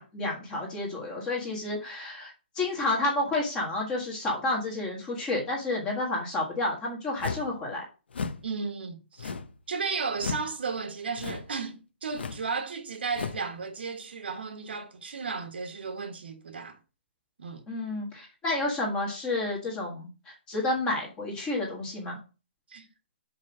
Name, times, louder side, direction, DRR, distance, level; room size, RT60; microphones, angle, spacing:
voice 1, 0.0-7.8 17.7-22.2, left 2 dB, 10° left, 1.6 m, -30 dB
sound 1, 7.2-7.6 8.1-8.5 9.2-9.6 10.2-10.5 11.2-11.5 12.1-12.5 13.1-13.5, left 5 dB, 65° left, 1.0 m, -35 dB
voice 2, 8.4-9.3 9.7-16.8 17.4-17.6 22.7-22.9, right 5 dB, 65° right, 1.5 m, -34 dB
5.4 x 4.9 x 6.1 m
hypercardioid pair, 175°, 6 cm